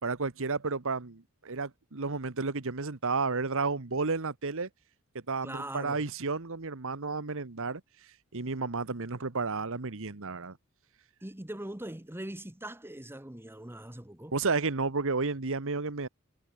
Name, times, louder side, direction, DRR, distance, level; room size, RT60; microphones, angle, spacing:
voice 1, 0.0-4.7 5.3-7.8 8.3-10.6 14.3-16.1, right 4 dB, 65° right, 1.3 m, -32 dB
voice 2, 5.4-6.0 11.2-14.3, right 1 dB, 10° right, 1.4 m, -41 dB
head